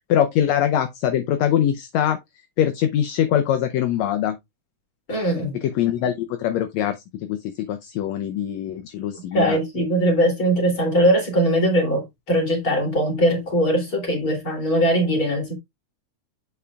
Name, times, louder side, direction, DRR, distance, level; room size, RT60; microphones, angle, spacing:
voice 1, 0.0-2.2 2.6-4.4 5.5-9.6, left 10 dB, 75° left, 1.8 m, -23 dB
voice 2, 5.1-5.6 9.3-15.6, equal, 30° left, 3.3 m, -21 dB
8.4 x 6.9 x 2.4 m
omnidirectional pair, 3.6 m